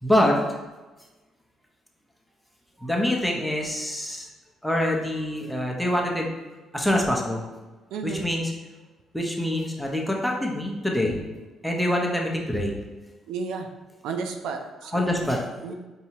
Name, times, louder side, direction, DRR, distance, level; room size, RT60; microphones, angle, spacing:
voice 1, 0.0-0.6 2.8-4.3 4.6-6.3 6.7-7.5 8.0-8.5 9.1-11.2 11.6-12.7 14.9-15.7, left 1 dB, ahead, -1 dB, 0.7 m, -25 dB
voice 2, 7.9-8.3 13.3-13.7 14.0-15.3 15.6-15.7, right 5 dB, 85° right, 5 dB, 0.4 m, -32 dB
4.6 x 2.7 x 2.9 m, 1.2 s
cardioid pair, 100°, 0 cm